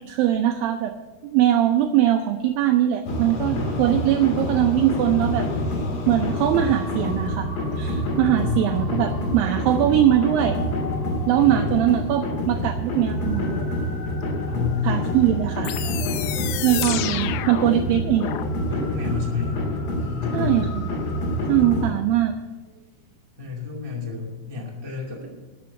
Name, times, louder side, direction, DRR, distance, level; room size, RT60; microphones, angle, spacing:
voice 1, 0.1-0.9 1.2-5.5 6.1-7.5 7.8-10.7 11.3-13.7 14.8-16.0 16.6-18.3 20.3-20.9 21.5-22.4, right 11 dB, 80° right, 6 dB, 2.1 m, -21 dB
sound 1, 3.1-21.9, left 1 dB, 50° left, 2.5 m, -27 dB
voice 2, 3.5-3.8 8.2-9.3 9.9-10.1 11.3-11.7 14.5-15.1 15.6-15.7 18.7-19.6 19.9-20.5 23.4-25.3, left 6 dB, 10° right, -3 dB, 1.1 m, -30 dB
sound 2, 15.6-18.5, left 12 dB, 80° left, 2.1 m, -30 dB
12.0 x 6.7 x 7.8 m, 1.2 s
omnidirectional pair, 4.7 m